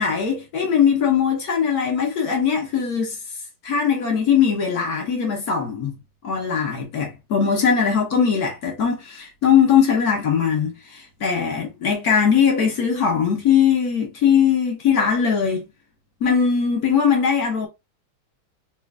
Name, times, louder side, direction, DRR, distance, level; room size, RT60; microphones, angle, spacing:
voice 1, 0.0-3.2 3.6-6.0 6.2-15.7 16.2-17.7, left 7 dB, 55° left, 1.2 m, -20 dB
4.2 x 2.5 x 2.3 m
omnidirectional pair, 2.2 m